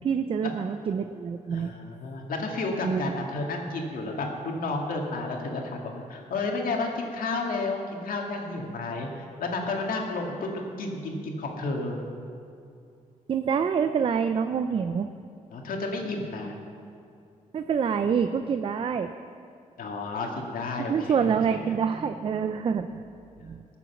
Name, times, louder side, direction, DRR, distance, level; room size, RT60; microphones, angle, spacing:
voice 1, 0.0-1.7 2.8-3.2 13.3-15.1 17.5-19.1 20.9-23.2 23.4-23.7, right 6 dB, 40° right, 9 dB, 0.4 m, -26 dB
voice 2, 1.5-12.1 15.5-16.6 19.8-21.6 23.4-23.5, left 3 dB, 90° left, 1 dB, 2.0 m, -32 dB
18.0 x 7.1 x 7.1 m, 2.5 s
wide cardioid pair, 165°, 14 cm